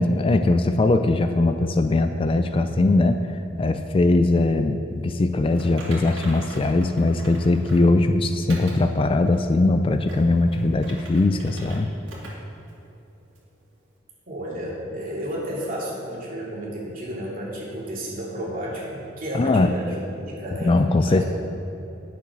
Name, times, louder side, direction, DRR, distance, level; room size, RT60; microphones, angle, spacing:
voice 1, 0.0-3.2 3.6-11.9 19.4-19.7 20.6-21.2, left 2 dB, 30° left, 8 dB, 0.3 m, -20 dB
Typing, 5.5-7.9 8.5-8.8 9.3-9.4 9.9-11.8 12.1-12.3 12.7-12.8 13.3-13.4, right 1 dB, 75° right, 2.5 m, -41 dB
voice 2, 14.3-21.2, equal, 45° right, -5 dB, 2.7 m, -32 dB
10.0 x 6.9 x 6.1 m, 2.9 s
head